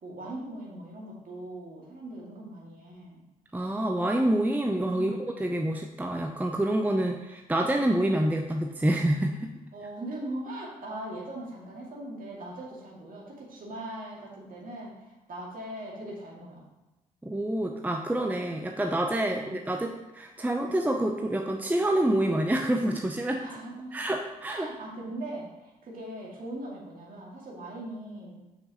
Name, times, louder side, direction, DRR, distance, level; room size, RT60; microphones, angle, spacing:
voice 1, 0.0-3.2 5.0-5.2 9.7-16.6 19.2-19.6 23.2-24.1 24.5-28.4, right 1 dB, 45° right, -3 dB, 2.3 m, -40 dB
voice 2, 3.5-9.5 17.2-23.4 23.9-24.7, right 1 dB, 10° right, 3 dB, 0.6 m, -27 dB
7.4 x 6.2 x 3.0 m, 1.1 s
hypercardioid pair, 40°, 19 cm